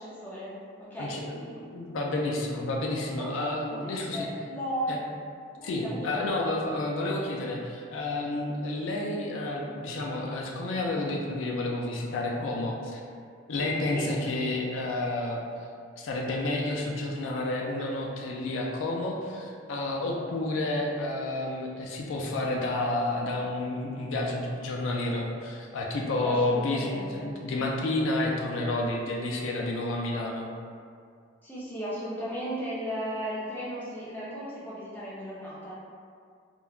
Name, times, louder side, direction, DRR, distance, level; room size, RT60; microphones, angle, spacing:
voice 1, 0.0-1.6 3.2-4.9 5.5-6.3 13.9-14.1 26.1-27.3 31.4-35.7, equal, 10° left, -9 dB, 0.5 m, -36 dB
voice 2, 1.0-1.4 1.7-4.3 4.9-5.0 5.6-13.0 13.5-15.4 16.0-30.5, left 2 dB, 75° left, -1 dB, 0.4 m, -30 dB
3.0 x 2.2 x 2.3 m, 2.3 s
head